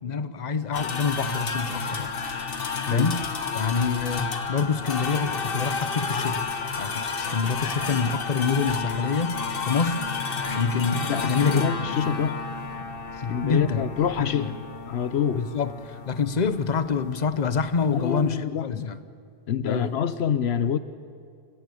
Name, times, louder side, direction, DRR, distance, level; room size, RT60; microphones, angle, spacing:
voice 1, 0.0-2.1 2.9-3.2 3.5-6.5 6.8-10.1 10.5-12.3 13.2-13.9 14.2-14.6 15.3-19.0 19.7-20.0, left 5 dB, 45° left, 12 dB, 1.0 m, -27 dB
sound 1, 0.7-18.3, left 5 dB, 60° left, 1.4 m, -31 dB
voice 2, 11.1-12.4 13.3-14.6 14.9-15.5 17.9-18.9 19.5-20.8, left 8 dB, 80° left, 13 dB, 1.0 m, -26 dB
28.0 x 16.5 x 8.6 m, 2.2 s
omnidirectional pair, 1.1 m